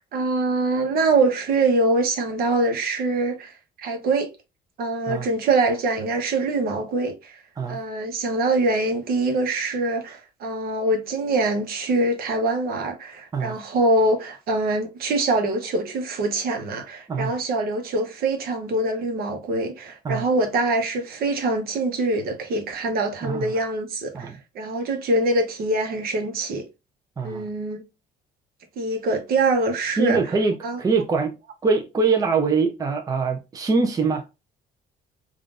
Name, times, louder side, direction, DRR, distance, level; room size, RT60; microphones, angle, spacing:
voice 1, 0.0-3.5 3.8-4.3 4.8-7.4 7.7-26.6 27.2-27.8 28.8-30.2 30.6-30.8, right 2 dB, 65° right, 0.9 m, -24 dB
voice 2, 23.2-23.5 24.1-24.4 27.2-27.5 30.0-31.4 31.6-34.2, right 4 dB, 20° right, 0.5 m, -23 dB
3.6 x 2.4 x 2.4 m
cardioid pair, 110°, 17 cm